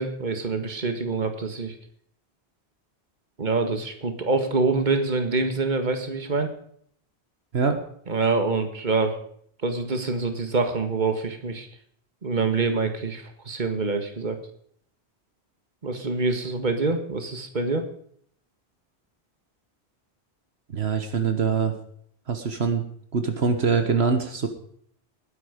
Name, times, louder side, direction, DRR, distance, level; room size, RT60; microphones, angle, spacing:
voice 1, 0.0-1.8 3.4-6.5 8.1-9.2 9.6-11.7 12.2-14.4 15.8-17.9, right 3 dB, 45° right, 6 dB, 1.9 m, -25 dB
voice 2, 20.7-21.7 22.3-22.8 23.1-24.5, right 5 dB, 70° right, 6 dB, 1.6 m, -23 dB
19.0 x 10.5 x 5.1 m, 0.63 s
omnidirectional pair, 1.1 m